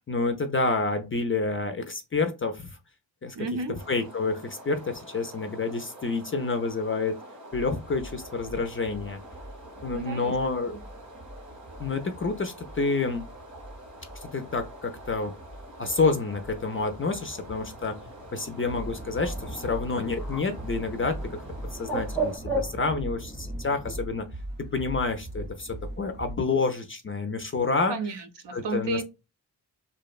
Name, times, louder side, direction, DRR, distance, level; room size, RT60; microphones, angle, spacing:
voice 1, 0.1-2.8 3.2-3.4 3.9-7.2 7.5-9.2 9.8-10.8 11.8-13.3 14.2-15.3 15.8-18.0 18.3-21.4 21.7-24.3 24.6-28.0 28.5-29.0, left 3 dB, 30° left, 7 dB, 0.4 m, -28 dB
voice 2, 3.3-3.8 9.9-10.3 10.6-10.8 27.9-29.0, right 4 dB, 70° right, 8 dB, 0.6 m, -32 dB
sound 1, 3.7-22.4, right 1 dB, 90° right, 1.4 m, -47 dB
sound 2, 7.5-26.4, right 1 dB, 25° right, 0.5 m, -41 dB
Bird, 18.5-24.0, right 2 dB, 5° left, 0.9 m, -36 dB
2.7 x 2.1 x 2.3 m, 0.26 s
cardioid pair, 50°, 43 cm